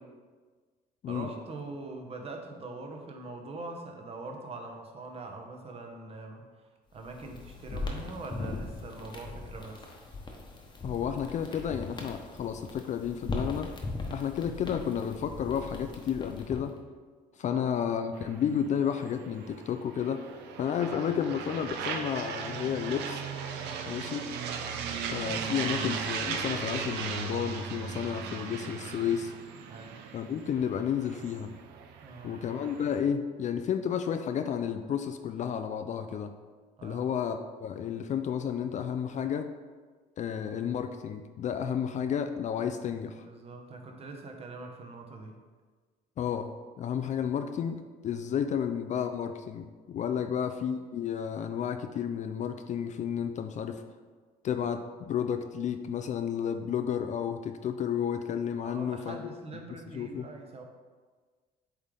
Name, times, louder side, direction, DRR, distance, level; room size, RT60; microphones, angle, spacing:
voice 1, 1.1-6.5 6.9-9.9 17.4-17.6 20.8-20.9 23.6-24.1 29.7-30.0 32.0-32.6 36.8-37.1 43.2-45.4 50.1-50.3 58.6-60.6, right 3 dB, 35° right, 2 dB, 1.0 m, -43 dB
sound 1, 7.0-16.8, left 2 dB, 25° left, 1.0 m, -39 dB
voice 2, 10.8-13.7 14.1-16.8 17.4-20.3 20.6-23.2 23.9-24.2 25.1-29.3 30.1-31.6 32.2-36.3 36.8-39.5 40.2-43.3 46.2-46.5 46.8-53.8 54.4-59.3 59.9-60.3, left 8 dB, 45° left, 8 dB, 0.4 m, -32 dB
sound 2, 18.2-33.0, right 6 dB, 85° right, 0.7 m, -37 dB
8.1 x 3.3 x 3.8 m, 1.5 s
cardioid pair, 110°, 17 cm